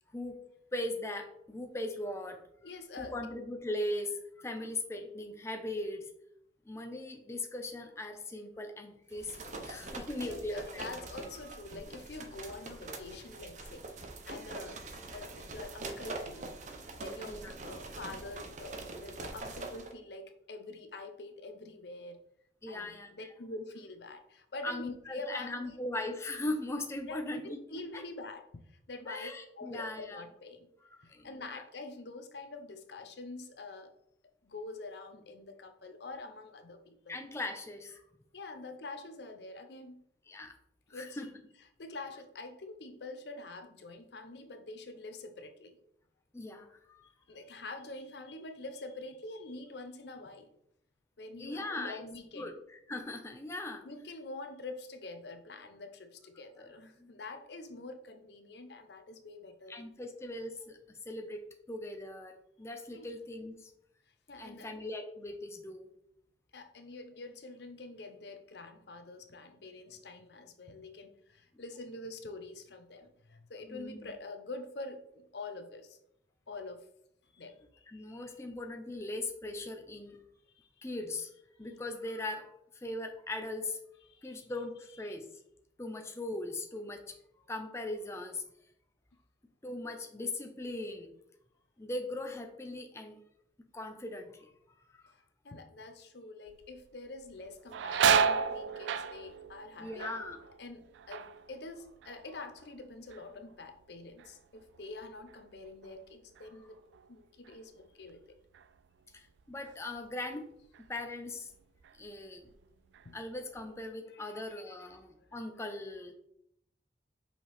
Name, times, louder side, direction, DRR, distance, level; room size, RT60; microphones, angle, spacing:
voice 1, 0.7-2.4 3.0-6.1 6.7-10.8 17.2-17.5 22.6-23.3 24.6-27.6 29.1-30.2 30.8-31.6 37.1-38.0 40.3-40.5 40.9-41.3 46.3-47.1 51.4-52.0 52.4-53.8 57.0-57.1 59.7-60.8 61.1-61.4 61.7-63.7 64.4-65.9 71.5-71.6 73.7-74.1 77.9-80.2 80.8-81.3 81.6-83.8 84.2-85.3 85.8-87.2 87.5-88.4 89.6-91.1 91.8-93.2 93.7-95.1 99.8-100.4 109.1-110.5 110.9-111.5 112.0-112.5 113.1-116.1, left 2 dB, 15° left, 4 dB, 0.5 m, -39 dB
voice 2, 2.6-3.2 10.1-13.9 14.3-14.8 15.1-16.5 17.0-22.2 22.7-25.6 27.1-29.3 29.6-30.7 31.0-33.9 34.4-37.2 38.3-40.0 40.9-41.2 41.8-45.8 47.3-50.5 51.2-52.5 53.8-59.9 62.9-63.1 64.3-64.7 66.5-75.0 75.3-76.0 76.5-76.9 77.3-78.4 80.6-80.9 84.1-84.5 85.0-85.1 95.1-100.1 100.6-106.8 107.1-108.4 113.0-113.2 114.1-114.4 114.7-115.3, left 2 dB, 65° left, 8 dB, 0.6 m, -46 dB
sound 1, 9.1-19.9, right 3 dB, 40° right, 0.7 m, -44 dB
sound 2, 96.5-96.9 97.2-102.8 103.1-103.7 104.2-107.1 107.5-107.6 108.5-108.7 109.2-110.3 110.7-110.9 111.5-112.2 112.5-113.6, right 6 dB, 75° right, 0.3 m, -33 dB
5.7 x 5.2 x 3.4 m, 0.74 s
head